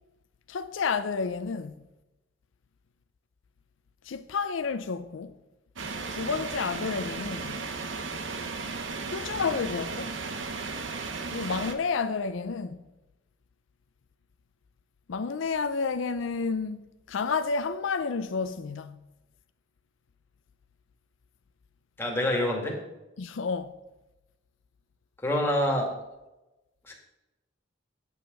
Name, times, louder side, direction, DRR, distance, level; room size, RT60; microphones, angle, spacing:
voice 1, 0.5-1.8 4.1-5.3 6.1-7.6 9.1-10.1 11.3-12.8 15.1-16.8 17.1-19.0 23.2-23.7, left 5 dB, 80° left, 0.5 m, -30 dB
sound 1, 5.8-11.7, right 4 dB, 75° right, 1.0 m, -35 dB
voice 2, 22.0-22.8 25.2-25.9 26.9-27.0, left 1 dB, 10° left, 2.2 m, -26 dB
9.2 x 8.2 x 5.3 m
head